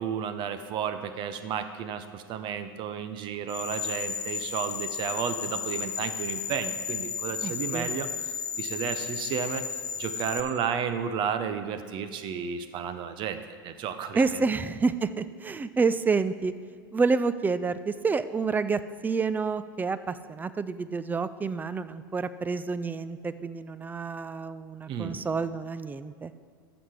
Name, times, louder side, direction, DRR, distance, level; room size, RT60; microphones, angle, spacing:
voice 1, 0.0-8.1 8.6-9.6 10.0-14.4 24.9-25.2, right 7 dB, 45° right, 10 dB, 0.7 m, -32 dB
sound 1, 3.5-10.4, left 6 dB, 30° left, 1.0 m, -33 dB
voice 2, 7.4-7.9 14.1-16.5 16.9-26.3, right 4 dB, 15° right, 14 dB, 0.4 m, -28 dB
14.0 x 6.0 x 5.1 m, 2.1 s
hypercardioid pair, 95°, 12 cm